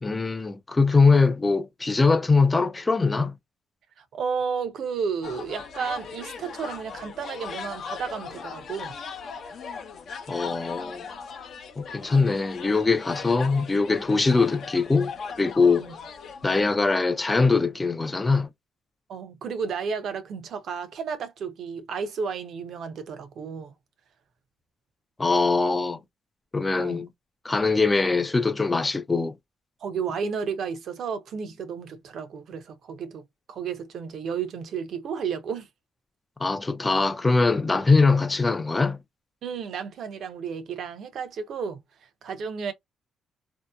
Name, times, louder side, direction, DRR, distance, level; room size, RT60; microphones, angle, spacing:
voice 1, 0.0-3.3 10.3-11.0 11.8-15.1 15.4-15.8 16.4-18.5 25.2-26.0 26.5-27.1 27.4-29.4 36.4-39.0, left 4 dB, 20° left, 0.4 m, -22 dB
voice 2, 4.0-9.0 15.8-15.9 19.1-23.7 26.8-27.1 29.8-35.7 39.4-41.8 42.2-42.7, right 6 dB, 65° right, 0.6 m, -32 dB
sound 1, 5.2-16.8, left 5 dB, 60° left, 0.6 m, -39 dB
2.7 x 2.1 x 2.2 m
cardioid pair, 90°, 0 cm